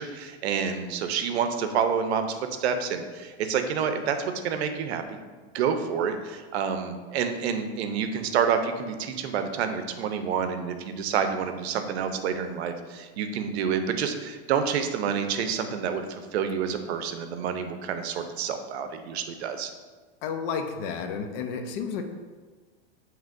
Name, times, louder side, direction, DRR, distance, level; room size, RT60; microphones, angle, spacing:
voice 1, 0.0-4.2 4.4-5.2 5.5-19.7, right 7 dB, 75° right, 7 dB, 0.6 m, -28 dB
voice 2, 20.2-22.0, left 6 dB, 55° left, 5 dB, 0.6 m, -31 dB
7.2 x 3.0 x 2.5 m, 1.4 s
supercardioid pair, 135°, 33 cm